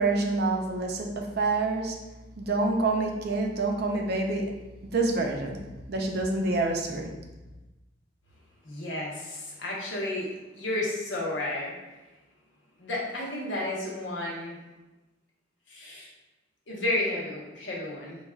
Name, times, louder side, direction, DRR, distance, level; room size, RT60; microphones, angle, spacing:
voice 1, 0.0-2.0 2.4-4.5 4.8-5.6 5.9-7.1, right 3 dB, 55° right, 2 dB, 0.5 m, -27 dB
voice 2, 8.6-11.7 12.8-14.6 15.7-16.1 16.7-18.2, left 1 dB, 80° left, -3 dB, 0.9 m, -32 dB
5.2 x 2.3 x 2.3 m, 1.1 s
head